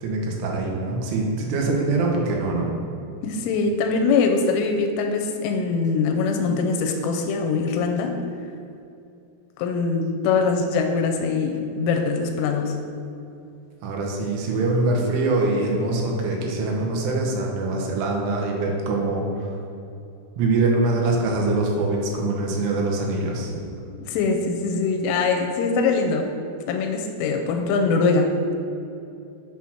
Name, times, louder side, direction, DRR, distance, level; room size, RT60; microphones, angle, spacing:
voice 1, 0.0-2.8 13.8-19.5 20.4-23.6, right 2 dB, 80° right, -1 dB, 3.6 m, -23 dB
voice 2, 3.2-8.2 9.6-12.8 23.9-26.3 26.7-28.3, left 4 dB, 85° left, 4 dB, 3.1 m, -23 dB
8.4 x 5.9 x 6.1 m, 2.7 s
omnidirectional pair, 5.8 m